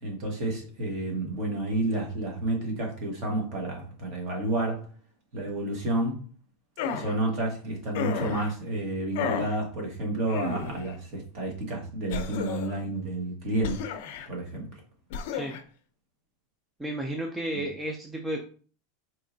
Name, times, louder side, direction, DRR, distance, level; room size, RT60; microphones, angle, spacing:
voice 1, 0.0-4.9 5.3-6.2 6.9-13.9 14.3-14.8 17.5-17.6, right 1 dB, 45° right, 1 dB, 1.3 m, -30 dB
sound 1, 6.8-7.1 7.9-8.5 9.2-9.6 10.3-10.9 12.1-12.8 13.6-14.3 15.1-15.6, left 6 dB, 60° left, 0.5 m, -33 dB
voice 2, 16.8-18.4, right 1 dB, 5° right, 2 dB, 0.4 m, -32 dB
4.5 x 3.1 x 2.6 m, 0.41 s
supercardioid pair, 160°, 0 cm